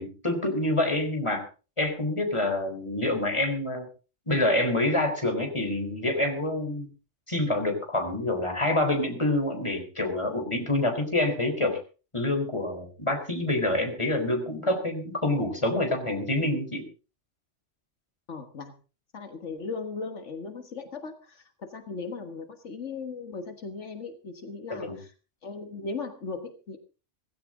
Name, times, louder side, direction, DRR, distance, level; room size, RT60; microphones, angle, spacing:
voice 1, 0.0-1.4 1.8-3.9 4.3-6.9 7.3-11.8 12.1-16.9 24.7-25.0, left 1 dB, 25° left, 4 dB, 4.0 m, -27 dB
voice 2, 18.3-18.7 19.1-25.1 25.4-26.8, left 4 dB, 80° left, 6 dB, 1.9 m, -37 dB
17.0 x 16.0 x 3.8 m, 0.34 s
omnidirectional pair, 1.2 m